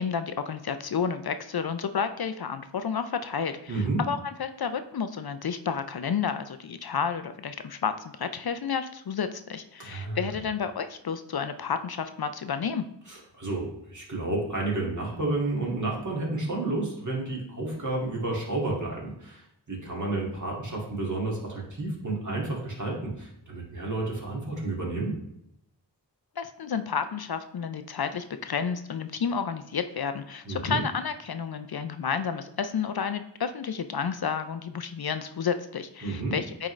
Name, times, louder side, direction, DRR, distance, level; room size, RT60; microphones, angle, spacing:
voice 1, 0.0-12.9 26.4-36.7, left 6 dB, 60° left, 10 dB, 0.5 m, -31 dB
voice 2, 3.7-4.0 9.8-10.2 13.1-25.2 30.4-30.8 36.0-36.4, right 2 dB, 40° right, -3 dB, 2.1 m, -31 dB
8.8 x 3.7 x 3.2 m, 0.77 s
wide cardioid pair, 45°, 43 cm